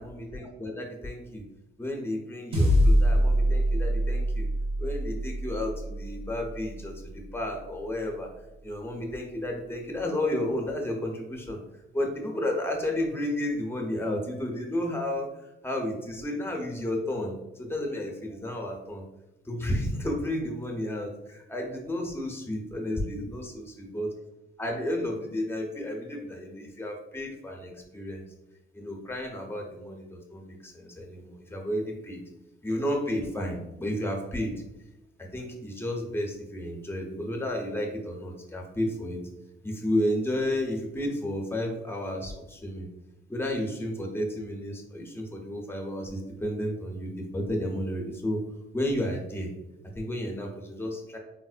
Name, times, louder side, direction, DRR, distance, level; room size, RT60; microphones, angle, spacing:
voice 1, 0.0-1.4 1.8-4.5 4.8-8.3 8.6-11.6 11.9-19.0 19.4-24.1 24.6-28.2 28.7-32.2 32.6-34.6 35.2-39.2 39.6-42.9 43.3-48.4 48.7-49.5 49.9-51.2, left 1 dB, 10° left, 1 dB, 0.7 m, -32 dB
sound 1, 2.5-7.1, equal, 30° right, 0.9 m, -25 dB
4.3 x 2.0 x 2.4 m, 0.93 s
cardioid pair, 90°, 20 cm